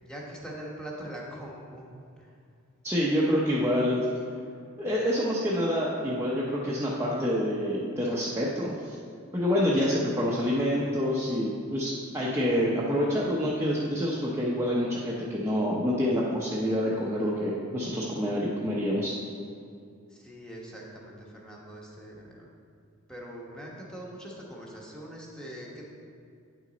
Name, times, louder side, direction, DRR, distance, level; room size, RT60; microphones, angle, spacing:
voice 1, 0.0-2.3 20.1-22.5 23.1-25.9, right 1 dB, 5° left, -3 dB, 1.1 m, -42 dB
voice 2, 2.8-4.0 4.8-9.0 9.3-19.1, equal, 10° right, -7 dB, 0.7 m, -27 dB
9.0 x 6.0 x 4.0 m, 2.4 s
head